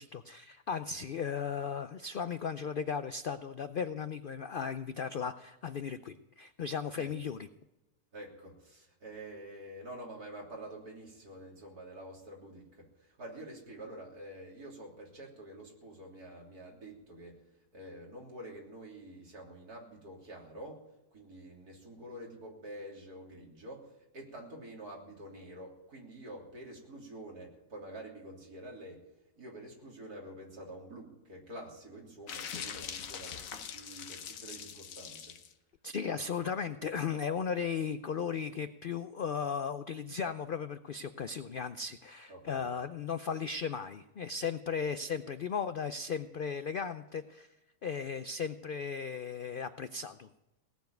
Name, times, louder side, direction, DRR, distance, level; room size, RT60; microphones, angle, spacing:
voice 1, 0.0-7.5 35.8-47.5 47.8-50.3, left 6 dB, 90° left, 11 dB, 0.4 m, -36 dB
voice 2, 8.1-17.5 17.7-20.8 21.1-29.0 29.4-35.4 42.3-42.8, right 1 dB, 75° right, -1 dB, 3.8 m, -48 dB
sound 1, 32.3-35.5, left 7 dB, 60° left, 1.3 m, -42 dB
18.0 x 7.1 x 9.2 m, 0.99 s
omnidirectional pair, 1.6 m